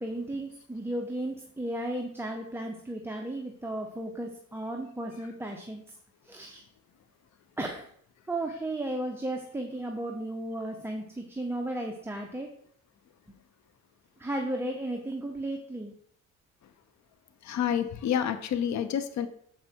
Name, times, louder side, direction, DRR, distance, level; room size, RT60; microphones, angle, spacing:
voice 1, 0.0-5.9 6.2-6.6 7.6-7.9 8.3-12.5 14.2-15.9, right 1 dB, 10° right, 1.0 m, -34 dB
voice 2, 17.4-19.3, left 9 dB, 65° left, 0.8 m, -28 dB
7.5 x 5.6 x 4.5 m
cardioid pair, 90°, 30 cm